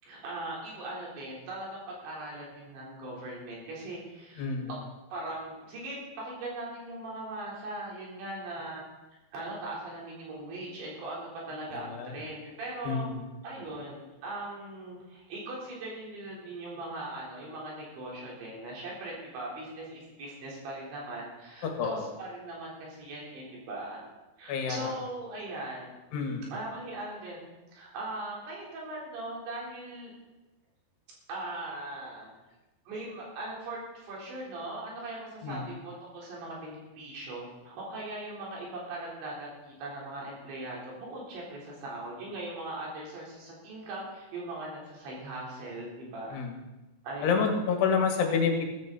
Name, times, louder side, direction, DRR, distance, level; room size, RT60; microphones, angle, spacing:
voice 1, 0.0-4.8 5.1-8.8 9.3-13.1 13.4-24.0 24.4-25.9 26.5-30.1 31.3-32.3 32.9-46.4 47.0-47.5, right 2 dB, 85° right, -4 dB, 6.2 m, -40 dB
voice 2, 4.4-4.7 11.7-12.1 12.8-13.2 21.6-22.0 24.5-24.9 26.1-26.5 35.4-35.7 46.3-46.6 47.2-48.6, left 5 dB, 75° left, 3 dB, 3.6 m, -28 dB
14.5 x 14.0 x 4.1 m, 1.1 s
omnidirectional pair, 5.1 m